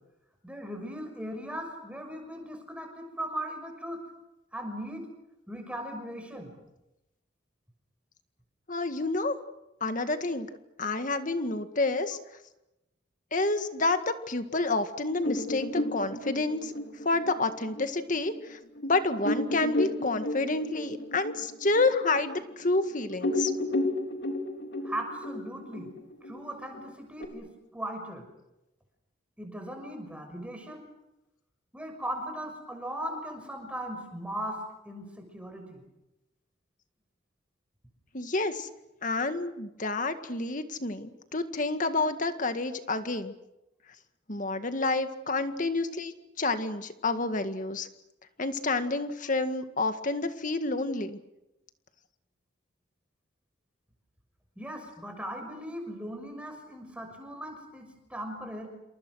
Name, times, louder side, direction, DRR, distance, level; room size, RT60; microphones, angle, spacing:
voice 1, 0.4-4.0 4.5-5.1 5.5-6.5 24.8-25.9 26.3-28.2 29.4-30.8 31.7-35.8 54.6-58.7, right 1 dB, 5° right, 4 dB, 6.2 m, -38 dB
voice 2, 8.7-9.4 9.8-10.5 10.8-12.2 13.3-16.7 17.0-23.5 38.1-38.7 39.0-43.3 44.3-47.9 48.4-51.2, left 3 dB, 45° left, 8 dB, 1.9 m, -29 dB
sound 1, 15.2-18.3 18.8-18.9 19.2-22.8 23.1-27.3, left 1 dB, 65° left, 3.9 m, -32 dB
28.5 x 27.5 x 6.4 m, 0.93 s
head